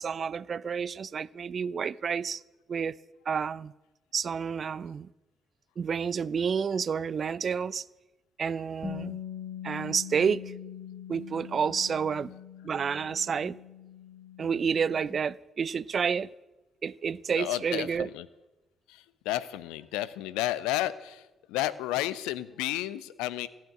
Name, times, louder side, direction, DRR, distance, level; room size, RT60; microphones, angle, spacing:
voice 1, 0.0-2.4 2.7-3.0 3.3-3.7 4.1-5.1 5.8-7.8 8.4-9.2 9.6-10.5 11.1-12.3 12.6-13.6 14.4-16.3 16.8-18.1, right 6 dB, 45° right, 0.3 m, -29 dB
Bass guitar, 8.8-15.1, left 9 dB, 15° left, 3.2 m, -42 dB
voice 2, 17.4-18.3 18.9-23.5, left 14 dB, 65° left, 0.5 m, -32 dB
15.0 x 6.5 x 9.5 m
figure-of-eight pair, 40°, 0 cm